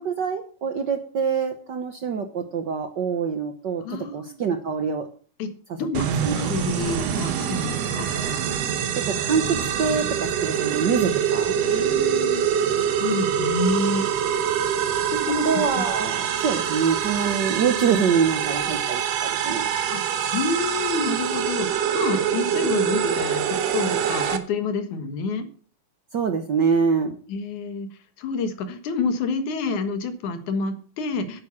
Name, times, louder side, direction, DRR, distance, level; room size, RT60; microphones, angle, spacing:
voice 1, 0.0-3.8 4.1-5.1 6.2-6.5 9.0-11.6 15.4-19.7 26.1-27.2, right 6 dB, 80° right, 7 dB, 0.9 m, -25 dB
voice 2, 3.8-4.3 5.4-5.5 5.8-6.1 6.4-8.1 11.6-12.5 13.0-14.1 15.1-15.5 15.8-15.9 19.9-20.0 20.3-25.5 27.3-27.9 28.2-31.4, left 3 dB, 80° left, 9 dB, 2.9 m, -28 dB
sound 1, 5.9-24.4, right 8 dB, 65° right, 2.0 m, -25 dB
9.8 x 9.1 x 7.1 m, 0.42 s
omnidirectional pair, 3.4 m